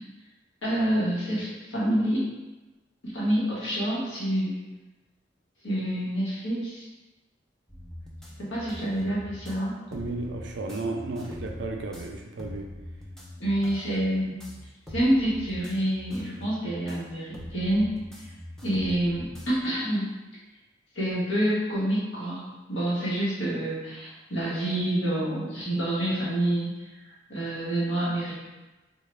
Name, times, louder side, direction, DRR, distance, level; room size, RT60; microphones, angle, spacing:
voice 1, 0.6-2.3 3.0-4.6 5.6-6.9 8.4-9.7 13.4-14.4 14.9-17.9 18.6-20.1 20.9-26.7 27.3-28.3, right 1 dB, 90° left, -7 dB, 1.3 m, -27 dB
sound 1, 7.7-19.6, left 1 dB, 5° left, 0.4 m, -43 dB
voice 2, 9.9-12.7, right 2 dB, 70° right, 2 dB, 0.5 m, -33 dB
3.7 x 2.3 x 3.3 m, 1.1 s
head